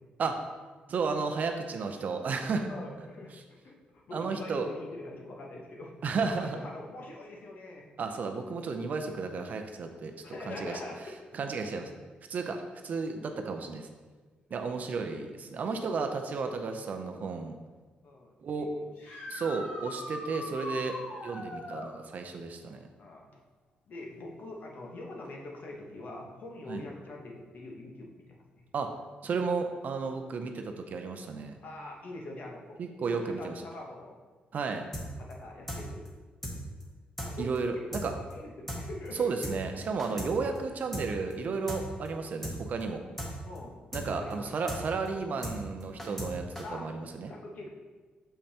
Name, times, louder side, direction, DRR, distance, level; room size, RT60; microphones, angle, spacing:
voice 1, 0.9-2.7 4.1-4.7 6.0-6.6 8.0-10.1 10.5-10.7 11.3-11.9 12.3-13.9 14.5-17.6 18.4-18.7 19.3-20.9 21.2-22.8 26.7-26.8 28.7-28.9 29.2-31.6 32.8-33.5 34.5-34.9 37.4-38.1 39.2-43.0 43.9-47.3, right 4 dB, 55° right, 5 dB, 0.5 m, -33 dB
voice 2, 2.7-5.9 6.2-7.9 10.2-11.2 12.5-12.6 18.0-18.9 19.3-19.4 21.0-21.2 21.6-21.8 23.0-23.4 23.9-28.6 31.6-32.8 33.1-34.2 35.2-36.1 36.5-36.7 37.2-37.8 38.1-39.3 40.1-40.3 43.4-43.9 44.1-44.5 46.6-46.9 47.3-47.7, left 2 dB, 60° left, 0 dB, 1.1 m, -44 dB
sound 1, 19.0-21.9 25.3-25.4 27.4-27.5 33.7-33.8, left 1 dB, 80° left, 1.4 m, -40 dB
sound 2, 34.9-35.0 35.3-35.4 35.7-35.8 36.0-36.1 36.4-36.5 36.8-36.9 37.2-37.3 37.5-37.6 37.9-38.0 38.3-38.4 38.7-38.8 39.0-39.1 39.4-39.5 39.8-40.3 40.5-40.6 40.9-41.0 41.3-41.4 41.7-41.8 42.0-42.1 42.4-42.5 42.8-42.9 43.2-43.3 43.5-43.6 43.9-44.0 44.3-44.4 44.7-44.8 45.0-45.1 45.4-45.5 45.8-46.3 46.5-46.6, equal, 10° left, 1.2 m, -37 dB
6.7 x 5.3 x 2.9 m, 1.3 s
cardioid pair, 110°, 3 cm